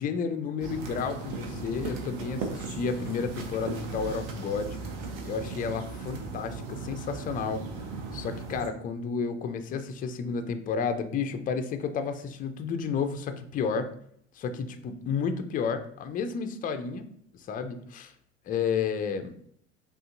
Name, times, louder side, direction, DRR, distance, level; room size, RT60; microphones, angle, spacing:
voice 1, 0.0-4.8 5.2-7.6 8.1-13.9 14.4-17.0 17.3-18.1 18.5-19.3, left 6 dB, 25° left, 8 dB, 0.4 m, -31 dB
sound 1, 0.6-8.7, right 4 dB, 50° right, 0.9 m, -37 dB
5.0 x 2.5 x 2.5 m, 0.67 s
figure-of-eight pair, 70°, 38 cm